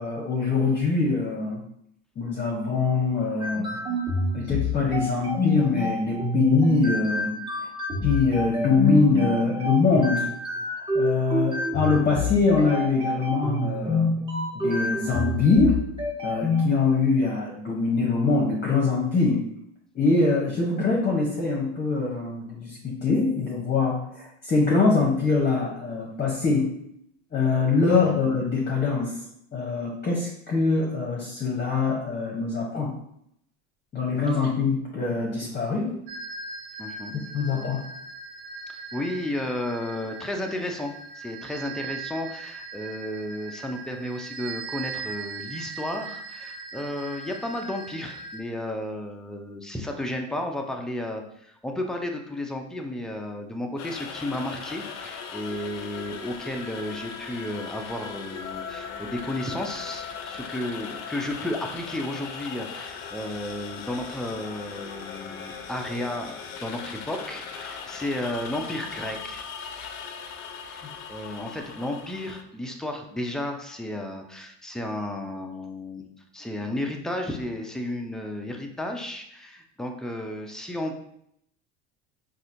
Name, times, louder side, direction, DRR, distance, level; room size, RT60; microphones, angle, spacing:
voice 1, 0.0-1.6 2.2-3.8 4.3-7.3 8.0-10.3 10.7-14.1 14.5-15.9 16.2-19.4 19.9-26.8 27.3-29.2 29.5-32.9 33.9-35.9 37.3-37.8, left 4 dB, 30° left, -2 dB, 0.8 m, -23 dB
sound 1, 3.4-16.6, left 2 dB, 15° right, 1.2 m, -27 dB
sound 2, 36.1-48.4, right 4 dB, 85° right, 0.6 m, -39 dB
voice 2, 36.8-37.2 38.7-69.5 70.7-70.8 71.1-76.0 76.3-81.0, left 1 dB, ahead, 2 dB, 0.5 m, -33 dB
sound 3, 53.8-72.4, left 6 dB, 55° left, 0.6 m, -38 dB
4.1 x 2.6 x 2.6 m, 0.73 s
hypercardioid pair, 85°, 33 cm